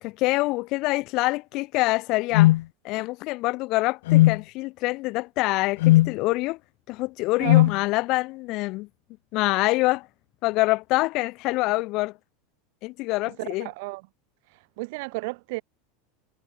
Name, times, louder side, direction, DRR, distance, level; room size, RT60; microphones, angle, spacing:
voice 1, 0.0-2.5 2.8-6.6 6.9-8.9 9.3-10.1 10.4-12.1 12.8-13.7, left 21 dB, 50° left, 5.3 m, -25 dB
sound 1, 2.3-2.6 4.1-4.4 5.8-6.1 7.5-7.8, left 17 dB, 75° left, 1.7 m, -16 dB
voice 2, 13.3-14.1 14.5-15.6, right 26 dB, 65° right, 4.8 m, -33 dB
supercardioid pair, 140°, 0 cm